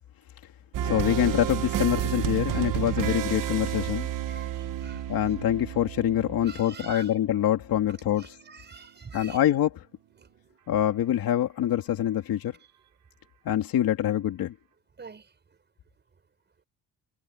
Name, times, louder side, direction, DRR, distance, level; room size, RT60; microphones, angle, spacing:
sound 1, 0.7-7.4, right 12 dB, 60° right, 1.2 m, -31 dB
voice 1, 0.8-4.1 5.1-8.2 9.1-9.7 10.7-12.5 13.4-14.5, left 11 dB, 65° left, 2.8 m, -25 dB
voice 2, 4.2-5.4 6.4-7.2 7.9-9.4 10.2-10.6 12.4-12.9 15.0-15.4, right 5 dB, 30° right, 6.7 m, -46 dB
cardioid pair, 155°, 37 cm